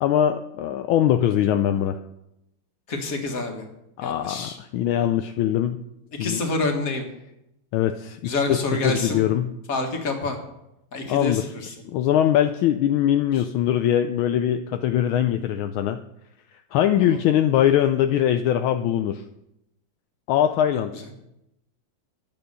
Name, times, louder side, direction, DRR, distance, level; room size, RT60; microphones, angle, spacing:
voice 1, 0.0-2.0 4.0-5.8 6.2-6.4 7.7-8.6 8.8-9.5 11.1-11.5 11.8-16.0 16.7-19.2 20.3-20.9, left 11 dB, 80° left, 8 dB, 1.4 m, -22 dB
voice 2, 2.9-3.6 4.0-4.6 6.2-7.1 8.2-9.2 9.7-10.4 10.9-11.8 17.0-17.2 20.9-21.0, left 3 dB, 45° left, 3 dB, 2.1 m, -27 dB
10.5 x 9.1 x 6.8 m, 0.87 s
omnidirectional pair, 2.3 m